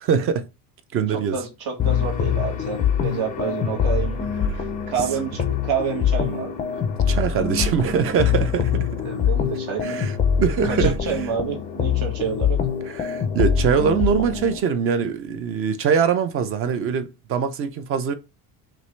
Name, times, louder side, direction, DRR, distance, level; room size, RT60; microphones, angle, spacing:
voice 1, 0.0-0.5 0.9-1.4 7.1-9.0 9.8-10.1 10.4-11.2 12.9-18.1, right 6 dB, 35° right, 0.5 m, -23 dB
voice 2, 1.1-6.6 9.0-9.9 10.6-12.6, right 7 dB, 65° right, 1.7 m, -29 dB
sound 1, 1.8-14.6, left 7 dB, 20° left, 0.4 m, -24 dB
5.9 x 2.5 x 3.2 m
cardioid pair, 175°, 39 cm